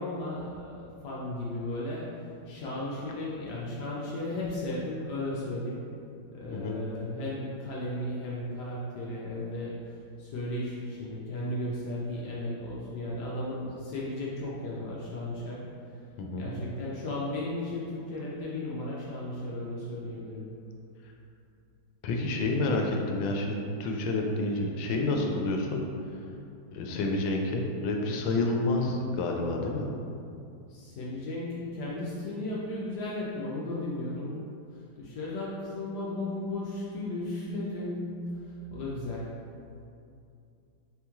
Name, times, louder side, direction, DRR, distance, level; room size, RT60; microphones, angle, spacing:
voice 1, 0.0-2.1 2.5-5.8 6.3-9.8 10.2-15.7 16.4-20.5 30.7-34.4 35.0-38.2 38.7-39.3, left 1 dB, 70° left, -5 dB, 1.1 m, -35 dB
voice 2, 16.2-16.5 22.0-25.8 26.7-29.9, left 2 dB, 85° left, 1 dB, 1.4 m, -29 dB
4.2 x 3.0 x 3.5 m, 2.5 s
omnidirectional pair, 2.1 m